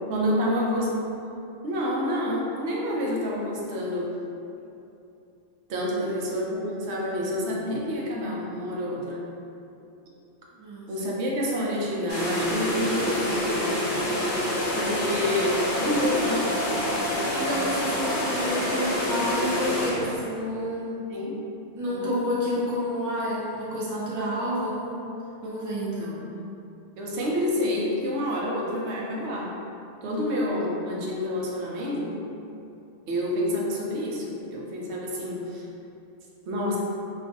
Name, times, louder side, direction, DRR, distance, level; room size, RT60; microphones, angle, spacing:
voice 1, 0.1-1.0 1.6-4.2 5.7-9.2 10.9-13.9 14.7-16.5 21.1-21.4 21.8-22.1 26.0-26.4 27.0-29.6 30.0-32.2 33.1-35.7 36.5-36.8, left 1 dB, 85° right, -3 dB, 0.9 m, -28 dB
voice 2, 10.6-10.9 17.1-21.0 21.8-25.1 25.4-26.1, equal, 25° right, -7 dB, 0.4 m, -30 dB
sound 1, 12.1-20.1, left 1 dB, 55° left, 0.7 m, -27 dB
2.5 x 2.4 x 3.8 m, 2.7 s
omnidirectional pair, 1.1 m